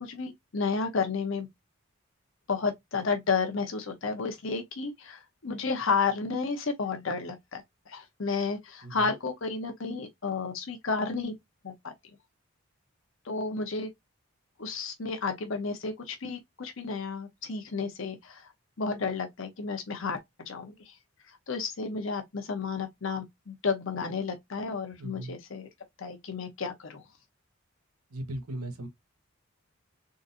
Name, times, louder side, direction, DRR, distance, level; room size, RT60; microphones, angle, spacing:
voice 1, 0.0-1.5 2.5-11.3 11.6-11.9 13.2-13.9 14.6-18.5 18.8-20.2 20.5-21.0 21.2-25.7 26.0-27.0, left 4 dB, 60° left, 0.7 m, -32 dB
voice 2, 25.0-25.3 28.1-28.9, right 1 dB, 90° right, 1.0 m, -37 dB
3.8 x 2.5 x 2.6 m
head